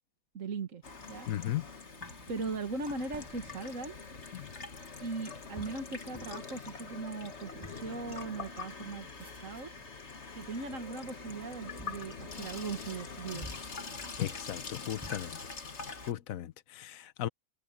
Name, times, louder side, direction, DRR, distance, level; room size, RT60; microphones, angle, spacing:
voice 1, 0.3-0.8 1.1-1.3 2.3-4.0 5.0-9.8 10.4-13.6, right 3 dB, 70° right, 2.0 m, -39 dB
Water tap faucet / Sink (filling or washing), 0.8-16.1, left 4 dB, 55° left, 2.1 m, -44 dB
sound 1, 0.9-10.0 10.4-11.1 11.8-12.9 13.4-15.5, equal, 15° right, 7.9 m, -54 dB
voice 2, 1.3-1.7 4.3-4.5 14.2-15.4 16.1-17.3, left 13 dB, 75° left, 1.2 m, -36 dB
omnidirectional pair, 1.4 m